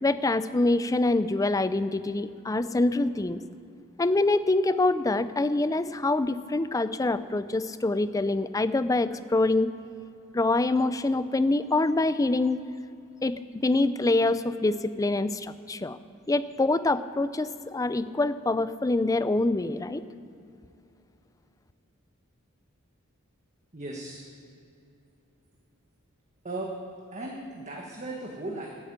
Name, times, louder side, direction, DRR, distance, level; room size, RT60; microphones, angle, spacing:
voice 1, 0.0-3.4 4.0-9.7 10.3-12.6 13.2-16.0 16.3-20.0, left 2 dB, 15° left, 13 dB, 0.4 m, -25 dB
voice 2, 23.7-24.2 26.4-26.7 27.1-28.7, right 2 dB, 35° right, -1 dB, 1.5 m, -36 dB
13.0 x 8.7 x 8.7 m, 2.7 s
head